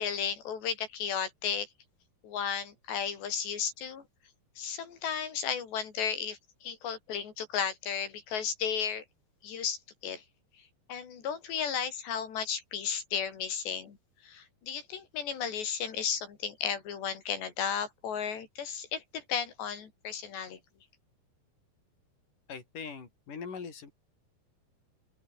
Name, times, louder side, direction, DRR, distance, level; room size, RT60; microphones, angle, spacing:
voice 1, 0.0-1.7 2.2-4.0 4.6-9.0 9.4-10.2 10.9-14.0 14.2-20.6, left 7 dB, 85° left, 5.9 m, -34 dB
voice 2, 22.5-23.9, left 5 dB, 50° left, 6.7 m, -41 dB
open air
omnidirectional pair, 4.8 m